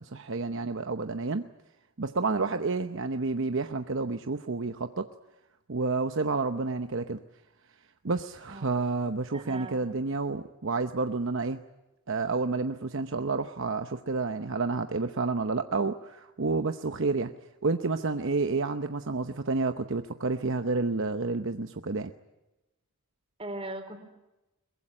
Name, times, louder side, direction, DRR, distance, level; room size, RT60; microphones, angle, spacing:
voice 1, 0.0-1.5 2.0-5.1 5.7-7.2 8.0-11.6 12.1-17.3 17.6-22.1, right 3 dB, 60° right, 8 dB, 0.8 m, -30 dB
voice 2, 9.3-10.0 23.4-24.0, right 2 dB, 25° right, 6 dB, 3.9 m, -39 dB
23.0 x 21.5 x 9.9 m, 1.0 s
head